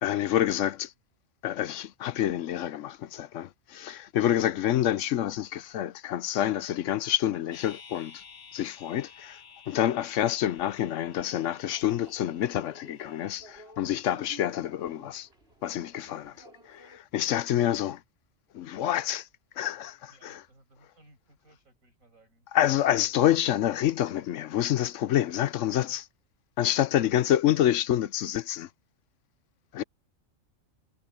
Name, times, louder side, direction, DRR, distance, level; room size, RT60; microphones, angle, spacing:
voice 1, 0.0-0.9 1.4-8.2 8.5-9.4 9.7-15.3 15.6-16.3 16.8-18.0 18.5-19.2 19.6-20.4 22.5-26.1 26.6-28.7 29.7-29.8, left 12 dB, 70° left, 0.9 m, -27 dB
sound 1, 7.5-13.4, left 6 dB, 45° left, 1.2 m, -52 dB
sound 2, 10.3-17.0, right 2 dB, 50° right, 6.8 m, -54 dB
voice 2, 16.1-16.4 20.1-22.5 26.9-27.1, right 1 dB, 90° right, 7.9 m, -61 dB
omnidirectional pair, 1.4 m